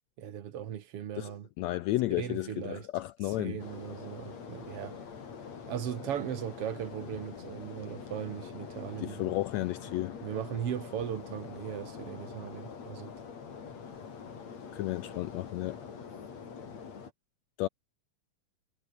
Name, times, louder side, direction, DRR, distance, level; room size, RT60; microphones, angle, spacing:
voice 1, 0.2-1.5 2.2-2.9 3.4-5.0 5.7-9.4 10.2-13.1, right 9 dB, 55° right, 2.2 m, -38 dB
voice 2, 1.2-3.6 9.0-10.2 14.7-15.8 17.6-17.7, left 16 dB, 80° left, 1.6 m, -33 dB
sound 1, 3.6-17.1, left 6 dB, 55° left, 4.4 m, -45 dB
omnidirectional pair, 3.7 m